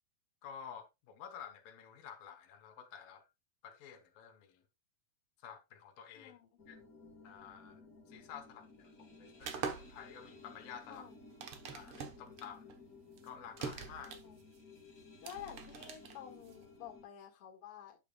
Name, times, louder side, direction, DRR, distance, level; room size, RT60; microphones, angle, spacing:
voice 1, 0.4-3.3 3.6-4.6 5.4-6.4 6.7-6.8 7.2-7.8 8.1-11.0 11.7-12.7 13.2-14.2, left 8 dB, 85° left, 2.9 m, -51 dB
voice 2, 6.1-6.5 10.9-11.2 14.0-14.4 15.2-18.0, left 9 dB, 45° left, 2.5 m, -50 dB
sound 1, 6.6-17.0, left 3 dB, 30° left, 1.9 m, -57 dB
sound 2, 9.4-16.8, right 6 dB, 60° right, 1.5 m, -45 dB
10.0 x 6.8 x 2.3 m
omnidirectional pair, 3.9 m